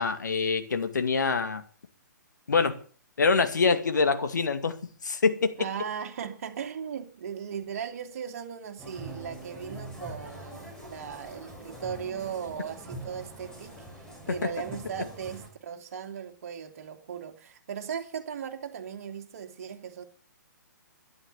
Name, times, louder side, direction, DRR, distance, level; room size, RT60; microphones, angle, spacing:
voice 1, 0.0-1.6 2.5-2.8 3.2-4.8 5.0-5.5, left 4 dB, 65° left, 2.3 m, -25 dB
voice 2, 5.6-20.0, right 7 dB, 50° right, 2.6 m, -38 dB
sound 1, 8.8-15.5, right 1 dB, 5° left, 5.1 m, -43 dB
13.0 x 11.0 x 8.1 m
figure-of-eight pair, 130°, 10 cm